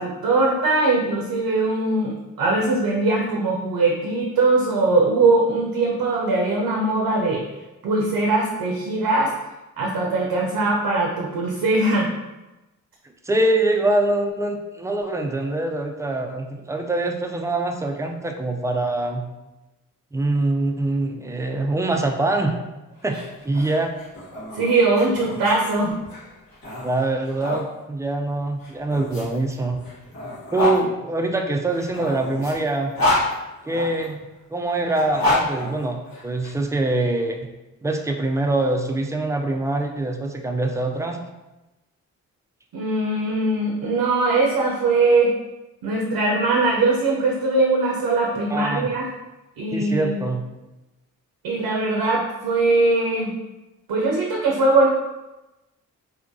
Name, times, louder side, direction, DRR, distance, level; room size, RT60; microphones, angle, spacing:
voice 1, 0.0-7.4 7.8-9.3 9.8-12.1 24.5-25.9 42.7-45.3 45.8-49.1 49.6-50.2 51.4-53.3 53.9-54.9, right 2 dB, 70° right, -1 dB, 0.5 m, -21 dB
voice 2, 13.2-19.3 20.1-22.6 23.0-23.2 23.4-23.9 26.8-29.8 30.5-32.9 33.6-34.2 34.5-37.4 37.8-41.2 48.5-48.9 49.7-50.4, right 2 dB, 10° right, 3 dB, 0.3 m, -24 dB
sound 1, 23.0-27.6 28.6-30.8 31.7-34.1 34.9-36.5, left 2 dB, 70° left, 1.3 m, -28 dB
2.7 x 2.3 x 2.6 m, 1.0 s
supercardioid pair, 50°, 36 cm